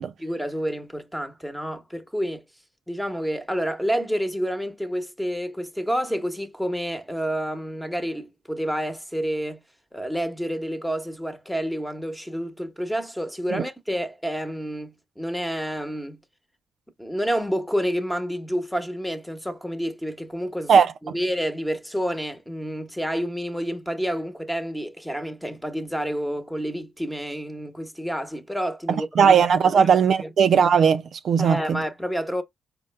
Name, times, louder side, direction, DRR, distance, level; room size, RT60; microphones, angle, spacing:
voice 1, 0.2-2.4 2.9-9.6 9.9-16.2 17.0-20.7 21.0-29.3 29.7-29.9 30.2-30.3 31.4-32.4, equal, 5° left, 0.9 m, -29 dB
voice 2, 20.7-21.2 28.9-31.8, right 7 dB, 65° right, 0.3 m, -19 dB
4.3 x 2.2 x 3.2 m
supercardioid pair, 50°, 0 cm